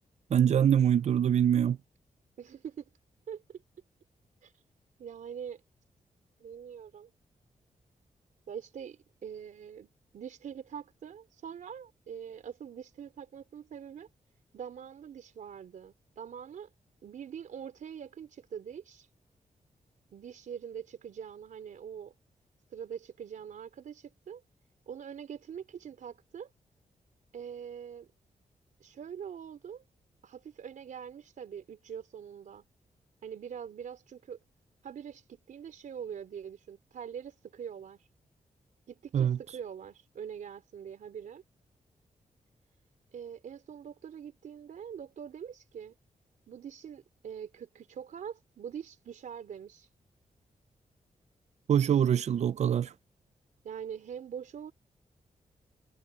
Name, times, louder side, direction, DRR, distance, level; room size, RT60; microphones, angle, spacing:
voice 1, 0.3-1.8 39.1-39.4 51.7-52.9, right 9 dB, 60° right, 0.5 m, -24 dB
voice 2, 2.4-2.9 3.3-3.6 4.4-4.6 5.0-5.6 6.4-7.1 8.5-14.1 14.5-16.7 17.0-19.1 20.1-22.1 22.7-24.4 24.9-26.5 27.3-28.1 28.8-29.8 30.2-32.6 33.2-34.4 34.8-38.1 38.9-41.4 43.1-45.9 46.5-49.9 51.9-52.2 53.6-54.7, right 8 dB, 90° right, 4.1 m, -43 dB
wide cardioid pair, 135°, 13 cm